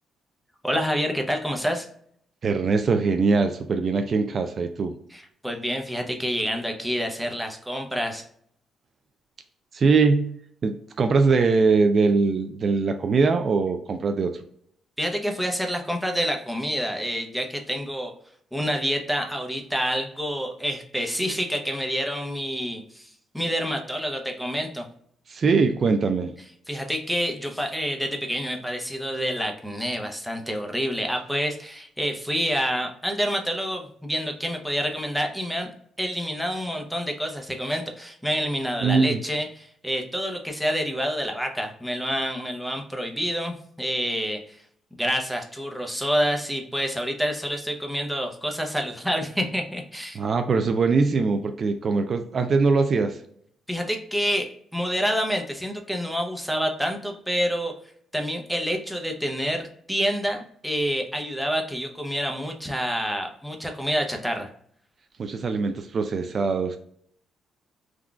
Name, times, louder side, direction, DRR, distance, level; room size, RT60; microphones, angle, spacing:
voice 1, 0.6-1.9 5.1-8.2 15.0-18.1 18.5-24.9 26.7-35.7 36.0-44.6 45.0-50.2 53.7-57.7 58.1-64.5, equal, ahead, 3 dB, 0.7 m, -28 dB
voice 2, 2.4-5.0 9.7-10.3 10.6-14.4 25.3-26.3 38.8-39.2 50.1-53.2 65.2-66.8, right 4 dB, 45° right, 7 dB, 0.3 m, -22 dB
3.7 x 2.3 x 2.3 m, 0.64 s
cardioid pair, 90°, 0 cm